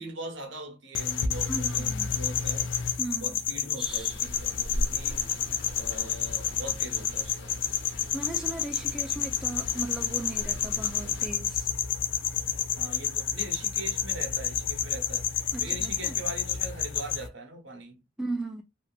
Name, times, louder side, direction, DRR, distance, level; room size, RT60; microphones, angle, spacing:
voice 1, 0.0-2.7 3.2-5.2 5.7-7.6 12.4-18.0, right 1 dB, 70° right, 0.9 m, -42 dB
sound 1, 0.9-17.3, left 8 dB, 75° left, 0.4 m, -30 dB
voice 2, 1.5-2.2 3.0-3.4 3.8-4.2 8.1-11.7 15.5-16.2 18.2-18.6, right 2 dB, 5° right, 0.4 m, -37 dB
sound 2, 3.8-11.3, equal, 60° left, 0.9 m, -40 dB
2.7 x 2.5 x 2.3 m
head